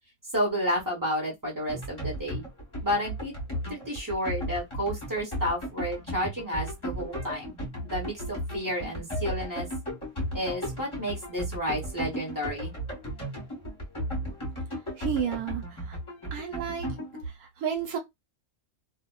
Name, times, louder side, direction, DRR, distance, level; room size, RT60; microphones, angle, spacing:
voice 1, 0.3-2.4 2.8-3.3 3.7-7.6 7.8-9.7 10.3-12.7, equal, 15° right, 0.8 m, -31 dB
sound 1, 1.7-17.2, equal, 25° left, 0.9 m, -35 dB
voice 2, 15.0-15.6 16.3-16.9 17.6-18.0, right 8 dB, 80° right, 1.2 m, -30 dB
2.4 x 2.2 x 2.2 m
omnidirectional pair, 1.6 m